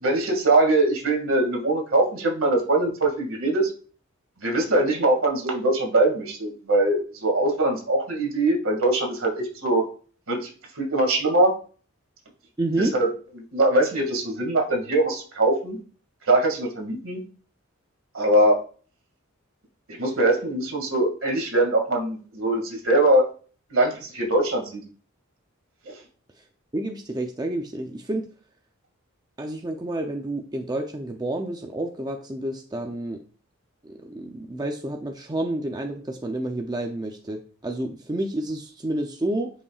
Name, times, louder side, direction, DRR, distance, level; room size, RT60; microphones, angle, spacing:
voice 1, 0.0-3.7 4.4-9.8 10.3-10.5 10.8-11.5 12.8-13.1 13.5-15.8 16.3-17.2 18.1-18.6 20.0-23.3 23.7-24.8, right 2 dB, 65° right, 2 dB, 2.1 m, -22 dB
voice 2, 12.6-12.9 26.7-28.2 29.4-33.2 33.8-39.5, right 1 dB, 20° right, 3 dB, 0.5 m, -29 dB
9.7 x 5.4 x 2.4 m, 0.40 s
head